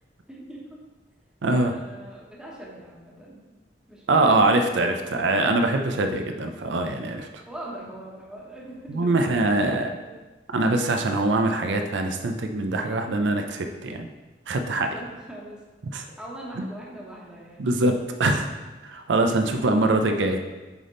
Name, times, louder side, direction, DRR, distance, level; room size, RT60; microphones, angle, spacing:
voice 1, 0.3-0.6 1.5-3.5 3.9-5.6 7.5-10.2 14.9-15.6 16.2-17.6 19.4-20.3, right 1 dB, 5° right, -5 dB, 1.2 m, -42 dB
voice 2, 1.4-1.7 4.1-7.4 8.9-9.9 10.5-14.1 14.5-14.9 15.9-16.0 16.6-16.7 17.6-17.9 18.2-18.5 18.8-20.4, right 2 dB, 85° right, 5 dB, 0.5 m, -23 dB
8.1 x 3.5 x 3.8 m, 1.2 s
head